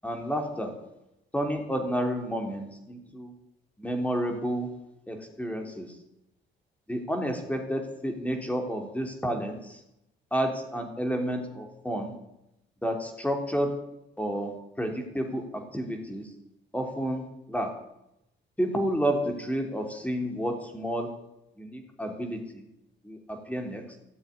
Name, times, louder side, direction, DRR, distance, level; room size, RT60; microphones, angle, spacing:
voice 1, 0.0-0.7 1.3-3.3 3.8-4.7 5.1-5.9 6.9-9.8 10.3-12.1 12.8-13.7 14.2-14.5 14.8-16.3 16.7-17.7 18.6-21.1 21.6-22.7 23.0-23.8, equal, 5° left, 4 dB, 3.2 m, -30 dB
14.0 x 7.2 x 9.6 m, 0.85 s
cardioid pair, 90°, 20 cm